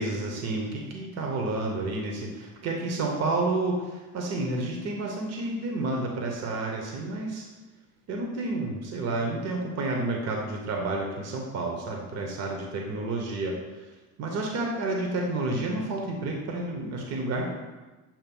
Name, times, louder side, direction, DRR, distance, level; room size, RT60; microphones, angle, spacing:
voice 1, 0.0-7.4 8.1-13.6 14.2-17.4, right 2 dB, 45° right, 0 dB, 0.9 m, -30 dB
7.2 x 2.6 x 5.2 m, 1.2 s
cardioid pair, 150°, 35 cm